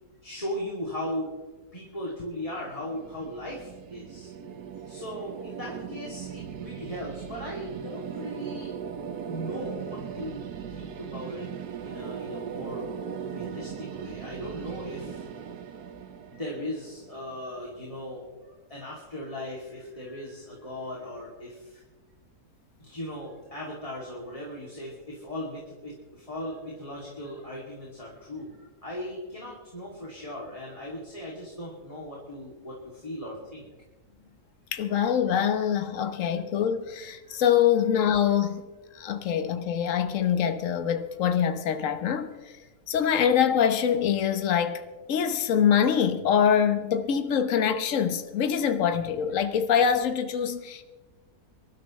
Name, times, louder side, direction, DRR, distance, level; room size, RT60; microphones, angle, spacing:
voice 1, 0.2-1.3 1.7-4.3 4.9-8.8 9.3-11.5 11.8-12.9 13.2-15.2 16.3-21.8 22.8-33.7 36.1-36.2 37.2-37.5, left 1 dB, 20° left, 2.9 m, -38 dB
sound 1, 2.4-17.4, right 7 dB, 75° right, 1.5 m, -39 dB
voice 2, 34.7-38.6 38.9-42.5 42.9-44.8 45.1-50.8, left 8 dB, 60° left, 1.4 m, -24 dB
25.5 x 12.5 x 3.2 m
omnidirectional pair, 1.7 m